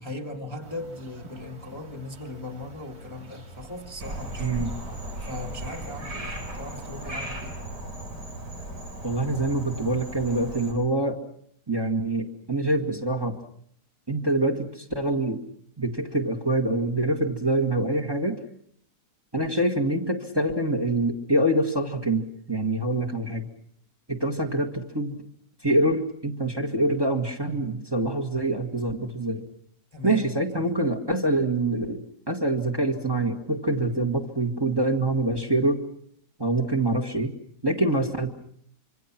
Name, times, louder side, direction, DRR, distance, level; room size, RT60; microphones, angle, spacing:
voice 1, 0.0-7.6 29.9-30.8, left 2 dB, 20° left, 3 dB, 1.5 m, -39 dB
sound 1, 0.6-7.3, right 2 dB, 65° right, 3.3 m, -47 dB
Frog, 4.0-10.7, right 1 dB, 85° right, 5.0 m, -36 dB
voice 2, 4.4-4.7 9.0-11.2 11.7-13.4 14.1-15.4 15.8-18.4 19.3-23.5 24.1-25.2 25.6-29.4 30.0-35.8 36.4-37.3 37.6-38.3, right 2 dB, 15° right, 2 dB, 1.8 m, -25 dB
26.0 x 25.0 x 6.0 m, 0.65 s
omnidirectional pair, 1.7 m